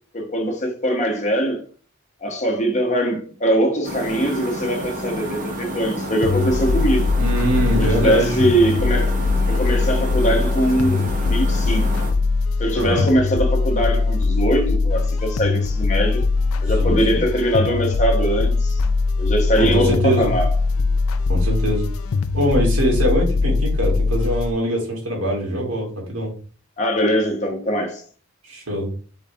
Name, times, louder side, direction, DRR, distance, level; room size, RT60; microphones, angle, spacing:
voice 1, 0.1-1.6 2.2-7.1 7.8-9.1 9.5-11.9 12.6-16.2 16.6-18.8 19.2-20.5 26.8-28.0, equal, 30° left, 0.9 m, -21 dB
sound 1, 3.8-12.1, right 1 dB, 35° right, 0.8 m, -30 dB
sound 2, 6.2-24.5, left 3 dB, 75° left, 0.4 m, -21 dB
voice 2, 7.2-8.4 12.7-13.1 16.8-17.2 19.6-20.3 21.3-21.9 22.3-26.3 28.4-28.9, right 1 dB, 80° right, 2.2 m, -22 dB
3.9 x 3.9 x 3.4 m
head